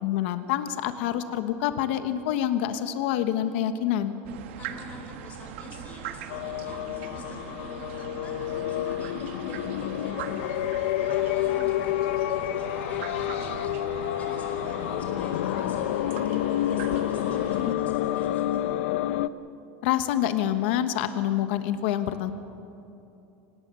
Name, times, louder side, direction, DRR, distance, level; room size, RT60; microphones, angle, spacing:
voice 1, 0.0-4.1 19.8-22.3, left 11 dB, 65° left, 9 dB, 1.2 m, -27 dB
sound 1, 4.2-17.7, right 9 dB, 75° right, 1.5 m, -40 dB
voice 2, 4.6-10.7 11.1-18.7, left 2 dB, 25° left, 2 dB, 4.6 m, -47 dB
sound 2, 6.3-19.3, left 13 dB, 90° left, 0.7 m, -29 dB
27.0 x 19.5 x 6.9 m, 2.9 s
supercardioid pair, 170°, 6 cm